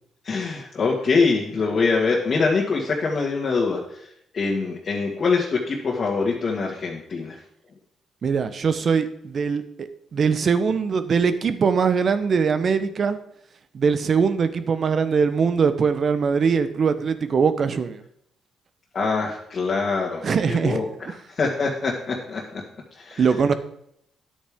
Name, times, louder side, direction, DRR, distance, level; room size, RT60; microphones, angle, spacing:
voice 1, 0.2-4.1 4.3-7.4 18.9-20.8 21.3-22.6 23.0-23.3, left 4 dB, 45° left, -3 dB, 1.9 m, -24 dB
voice 2, 8.2-13.2 13.7-18.0 20.2-20.8 23.2-23.5, right 6 dB, 50° right, 11 dB, 0.9 m, -21 dB
10.5 x 8.6 x 3.7 m, 0.72 s
cardioid pair, 90°, 0 cm